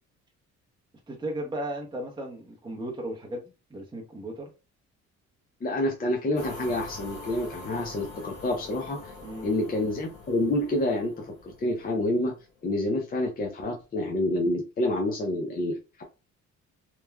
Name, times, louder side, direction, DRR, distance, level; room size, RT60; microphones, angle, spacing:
voice 1, 1.1-4.5 9.2-9.5, right 1 dB, 15° right, -1 dB, 0.7 m, -35 dB
voice 2, 5.6-9.1 9.4-12.3 12.6-16.0, left 1 dB, 30° left, 1 dB, 0.5 m, -28 dB
sound 1, 6.4-12.6, left 3 dB, 85° left, 0.9 m, -44 dB
3.0 x 2.2 x 2.3 m, 0.30 s
cardioid pair, 90°, 30 cm